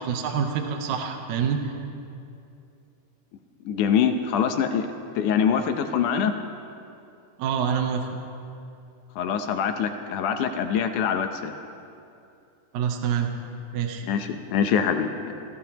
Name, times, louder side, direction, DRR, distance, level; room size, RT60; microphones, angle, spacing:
voice 1, 0.0-1.7 7.4-8.2 12.7-13.3 13.7-14.1, right 7 dB, 75° right, 4 dB, 2.2 m, -26 dB
voice 2, 3.7-4.9 5.2-6.3 9.2-11.5 14.1-15.3, left 7 dB, 85° left, 6 dB, 2.4 m, -24 dB
28.0 x 15.5 x 3.0 m, 2.6 s
omnidirectional pair, 3.5 m